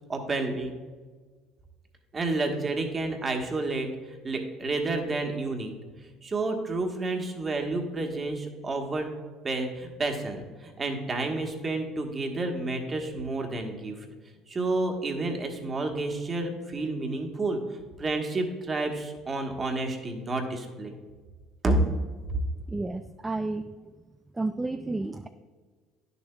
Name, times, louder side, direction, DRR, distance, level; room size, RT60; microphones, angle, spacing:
voice 1, 0.1-0.7 2.1-5.7 6.2-9.1 9.4-14.1 14.5-17.6 18.0-21.0 21.6-21.8 22.3-22.4, right 2 dB, 30° right, 3 dB, 1.3 m, -30 dB
voice 2, 22.7-23.7 24.3-25.3, right 2 dB, 15° right, 8 dB, 0.3 m, -31 dB
10.0 x 6.9 x 2.2 m, 1.4 s
hypercardioid pair, 75°, 0 cm